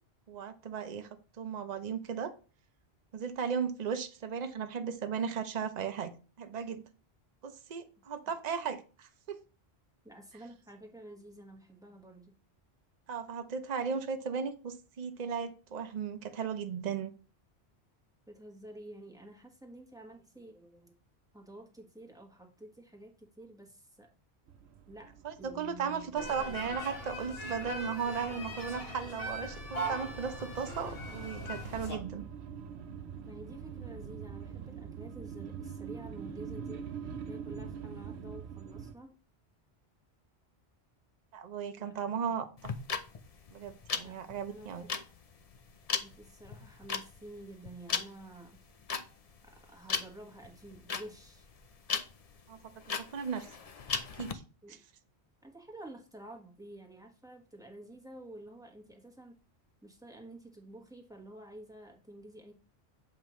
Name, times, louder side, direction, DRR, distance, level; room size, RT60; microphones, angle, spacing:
voice 1, 0.3-1.1 1.4-2.3 3.1-6.1 6.4-6.8 7.4-9.4 13.1-17.1 25.2-32.2 41.3-42.5 43.5-44.8 52.5-52.7 53.0-53.5 54.2-54.3, right 6 dB, 45° right, 9 dB, 0.8 m, -36 dB
voice 2, 10.0-12.3 18.3-20.9 21.3-24.1 24.9-25.1 25.4-26.6 33.3-36.9 37.3-39.2 41.8-42.4 44.0-44.9 46.0-48.6 49.4-51.5 54.6-54.8 55.4-59.4 59.8-62.5, right 1 dB, 5° right, 2 dB, 1.3 m, -50 dB
sound 1, 24.5-38.9, right 7 dB, 80° right, 0.9 m, -45 dB
sound 2, 26.2-32.0, equal, 65° left, 1.7 m, -40 dB
sound 3, 42.6-54.3, left 5 dB, 45° left, 0.6 m, -37 dB
7.5 x 5.3 x 3.1 m, 0.36 s
omnidirectional pair, 1.1 m